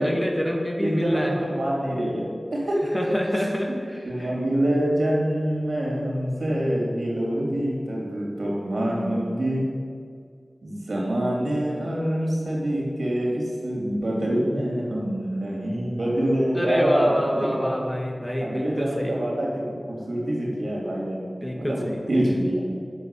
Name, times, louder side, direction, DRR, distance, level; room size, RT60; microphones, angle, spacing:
voice 1, 0.0-1.3 2.9-4.3 16.5-19.1 21.4-22.0, equal, 20° left, 1 dB, 1.8 m, -27 dB
voice 2, 0.8-3.1 4.1-9.7 10.6-17.8 18.4-21.2 21.5-22.8, right 1 dB, 75° right, -3 dB, 3.6 m, -26 dB
9.8 x 6.9 x 8.4 m, 2.1 s
wide cardioid pair, 60°, 0 cm